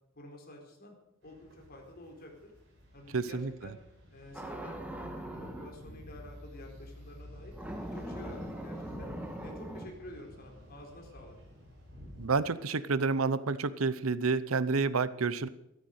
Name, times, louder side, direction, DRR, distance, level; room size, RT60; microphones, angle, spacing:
voice 1, 0.1-0.9 1.2-2.5 2.9-3.8 4.1-7.5 7.9-9.1 9.4-11.3, left 1 dB, 50° left, 1 dB, 4.3 m, -50 dB
sound 1, 1.2-12.3, left 1 dB, 60° right, 7.6 m, -51 dB
voice 2, 3.1-3.5 12.2-15.5, right 4 dB, 85° right, 16 dB, 0.8 m, -29 dB
sound 2, 4.3-5.8 7.5-9.9, right 1 dB, 5° right, 1.9 m, -41 dB
14.0 x 13.5 x 6.5 m, 0.87 s
head